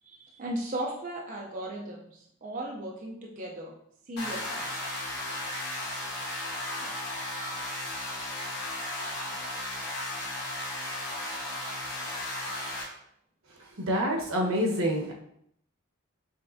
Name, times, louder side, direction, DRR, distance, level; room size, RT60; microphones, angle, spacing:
voice 1, 0.0-3.7 4.1-4.7 6.8-7.0, right 1 dB, 40° right, -2 dB, 0.5 m, -37 dB
sound 1, 4.2-12.8, left 1 dB, 55° left, 1.5 m, -35 dB
voice 2, 13.6-15.1, equal, 80° right, -1 dB, 1.1 m, -27 dB
5.6 x 3.3 x 2.6 m, 0.72 s
head